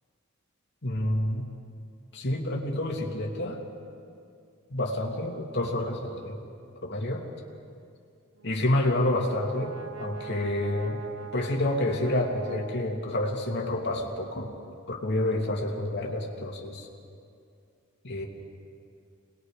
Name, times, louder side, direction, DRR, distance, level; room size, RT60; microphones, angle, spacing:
voice 1, 0.8-1.5 2.1-3.6 4.7-6.4 6.8-7.3 8.4-9.7 10.0-11.0 11.3-14.5 14.9-16.9 18.0-18.2, left 1 dB, 55° left, 0 dB, 2.5 m, -28 dB
Brass instrument, 8.4-13.4, right 5 dB, 70° right, 0.8 m, -42 dB
27.5 x 20.5 x 5.0 m, 2.4 s
head